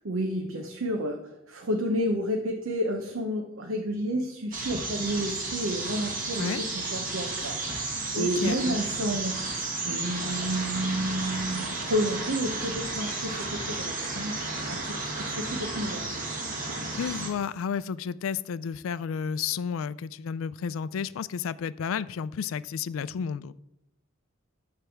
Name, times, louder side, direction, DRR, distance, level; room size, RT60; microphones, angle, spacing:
voice 1, 0.0-1.2 1.5-9.4 9.8-16.1, equal, 80° right, 2 dB, 0.9 m, -30 dB
sound 1, 4.5-17.3, right 3 dB, 40° right, 1.8 m, -33 dB
voice 2, 8.2-8.5 16.9-23.5, left 7 dB, 80° left, 18 dB, 0.3 m, -32 dB
10.0 x 3.4 x 7.1 m, 0.86 s
head